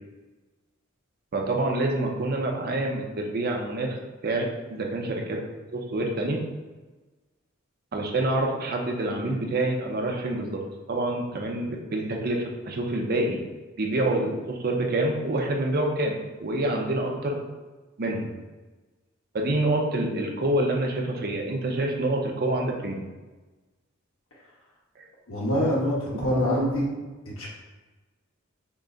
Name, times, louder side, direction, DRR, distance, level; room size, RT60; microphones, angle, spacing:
voice 1, 1.3-4.0 4.2-5.4 5.7-6.4 7.9-10.6 10.9-13.4 13.8-17.4 18.0-18.3 19.3-23.0 25.0-25.1 26.3-26.6, right 1 dB, 45° right, 1 dB, 0.6 m, -27 dB
voice 2, 25.3-26.0 26.2-26.8 27.2-27.5, equal, 80° left, -4 dB, 1.4 m, -25 dB
5.9 x 2.1 x 3.8 m, 1.2 s
head